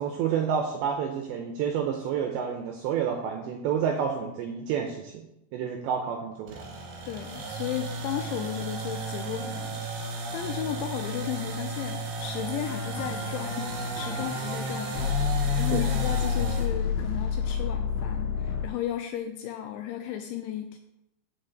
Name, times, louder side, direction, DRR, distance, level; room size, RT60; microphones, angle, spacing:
voice 1, 0.0-5.3 5.5-6.7 15.7-15.9, right 7 dB, 80° right, 4 dB, 2.6 m, -29 dB
sound 1, 6.5-16.7, right 3 dB, 60° right, 3.1 m, -34 dB
voice 2, 7.1-9.8 10.3-15.1 15.6-20.8, left 11 dB, 85° left, 6 dB, 2.7 m, -34 dB
sound 2, 12.6-18.7, left 7 dB, 70° left, 3.3 m, -29 dB
7.3 x 7.3 x 8.0 m, 0.87 s
omnidirectional pair, 6.0 m